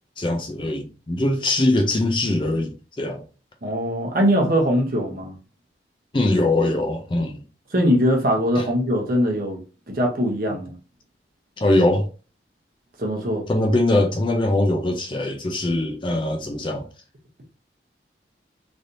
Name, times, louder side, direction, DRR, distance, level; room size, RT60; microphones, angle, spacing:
voice 1, 0.2-3.2 6.1-7.4 8.6-8.7 11.6-12.1 13.5-16.9, left 1 dB, 25° left, 0.4 m, -22 dB
voice 2, 3.6-5.3 7.7-9.6 9.9-10.7 13.0-13.4, equal, 50° right, 0.8 m, -21 dB
3.2 x 2.7 x 2.6 m
head